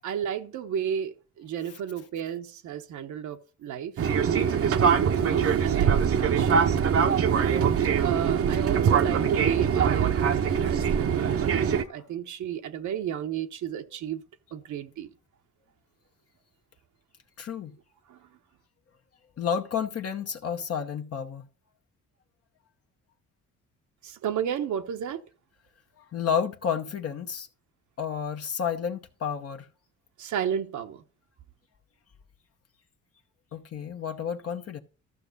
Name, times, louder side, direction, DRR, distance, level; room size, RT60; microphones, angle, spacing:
voice 1, 0.0-4.1 5.2-6.8 7.3-14.2 14.5-15.1 18.1-18.2 24.0-25.2 30.2-31.0, right 9 dB, 75° right, 1.1 m, -33 dB
Fixed-wing aircraft airplane, 4.0-11.8, right 7 dB, 50° right, 0.8 m, -23 dB
voice 2, 17.4-17.7 19.4-21.5 26.0-27.5 28.0-29.7 33.5-34.8, left 7 dB, 50° left, 0.9 m, -31 dB
13.5 x 6.0 x 4.0 m
cardioid pair, 90°, 30 cm